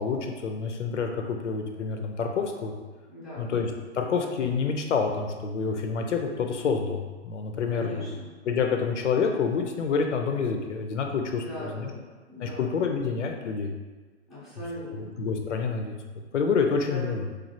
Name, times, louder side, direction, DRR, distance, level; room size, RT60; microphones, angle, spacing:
voice 1, 0.0-2.7 3.4-8.1 8.5-11.9 12.4-13.7 15.0-15.9 16.3-17.2, left 5 dB, 80° left, 4 dB, 0.5 m, -28 dB
voice 2, 3.1-3.5 7.7-8.3 11.3-12.7 14.3-15.1 16.9-17.3, left 1 dB, ahead, -12 dB, 0.5 m, -39 dB
3.1 x 2.4 x 2.6 m, 1.3 s
hypercardioid pair, 135°, 35 cm